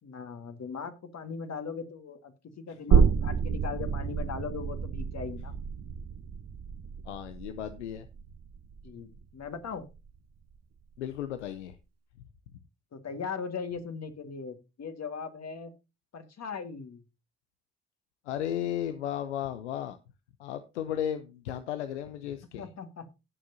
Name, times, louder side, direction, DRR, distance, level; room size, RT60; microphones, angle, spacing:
voice 1, 0.0-5.5 8.8-9.9 12.9-15.7 16.1-17.0 22.6-23.1, left 5 dB, 50° left, 7 dB, 1.9 m, -39 dB
sound 1, 2.9-10.2 10.5-10.6, right 6 dB, 50° right, 1.0 m, -29 dB
voice 2, 7.1-8.1 11.0-11.8 18.3-20.0 20.4-22.7, left 10 dB, 90° left, 11 dB, 0.6 m, -34 dB
18.5 x 6.7 x 2.8 m, 0.28 s
hypercardioid pair, 40°, 34 cm